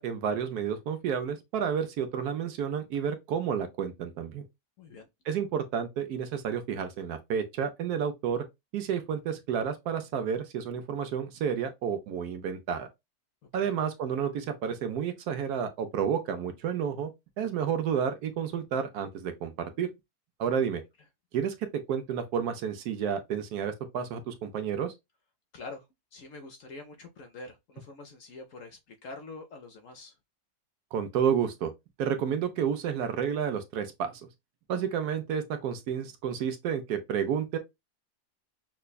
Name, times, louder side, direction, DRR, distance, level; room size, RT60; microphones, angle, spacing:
voice 1, 0.0-4.4 5.3-8.4 8.7-12.9 13.5-17.1 17.4-19.9 20.4-20.8 21.3-24.9 30.9-31.7 32.0-34.2 34.7-37.6, right 7 dB, 70° right, 1.1 m, -30 dB
voice 2, 4.8-5.1 13.5-13.7 25.5-30.2, left 3 dB, 65° left, 0.8 m, -45 dB
5.8 x 2.2 x 2.2 m
omnidirectional pair, 1.8 m